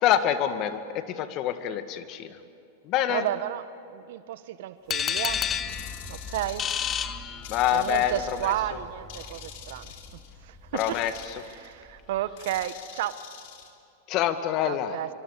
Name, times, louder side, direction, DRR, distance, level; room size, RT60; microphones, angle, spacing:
voice 1, 0.0-2.4 2.8-3.3 7.5-8.5 10.7-11.1 14.1-15.0, left 11 dB, 45° left, 2.0 m, -26 dB
voice 2, 3.1-5.4 6.1-6.6 7.7-9.9 10.4-11.0 11.4-13.2 14.6-15.1, right 13 dB, 65° right, 1.1 m, -32 dB
sound 1, 4.9-7.9, left 8 dB, 30° left, 1.2 m, -30 dB
sound 2, 5.3-12.7, left 1 dB, ahead, 2.9 m, -45 dB
sound 3, 5.7-7.0 7.4-8.7 9.1-10.3 10.8-11.7 12.4-13.7, left 10 dB, 60° left, 3.5 m, -45 dB
25.5 x 24.0 x 8.3 m
hypercardioid pair, 110°, 0 cm